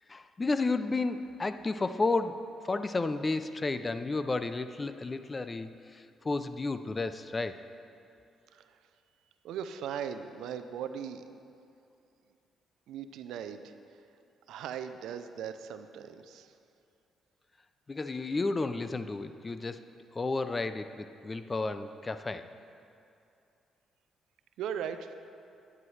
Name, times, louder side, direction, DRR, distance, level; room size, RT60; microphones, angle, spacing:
voice 1, 0.1-7.6 17.9-19.8 20.1-22.5, left 3 dB, 25° left, 11 dB, 0.4 m, -32 dB
voice 2, 9.4-11.2 12.9-13.7 14.5-16.5 24.6-25.1, right 8 dB, 85° right, 9 dB, 0.4 m, -38 dB
10.5 x 9.6 x 3.2 m, 2.5 s
cardioid pair, 90°, 0 cm